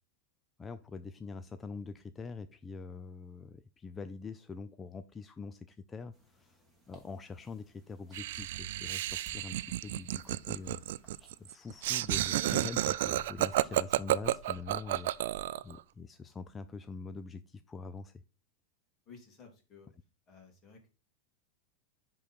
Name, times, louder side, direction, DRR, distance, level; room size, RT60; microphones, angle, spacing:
voice 1, 0.6-10.8 11.4-18.2, left 4 dB, 15° left, 10 dB, 0.4 m, -44 dB
sound 1, 6.1-11.5, right 2 dB, ahead, 1.9 m, -61 dB
Laughter, 8.1-15.7, right 14 dB, 70° right, 0.4 m, -31 dB
voice 2, 19.1-19.9 20.3-20.9, left 5 dB, 30° left, 3 dB, 2.5 m, -55 dB
10.0 x 3.8 x 4.3 m, 0.32 s
supercardioid pair, 140°, 0 cm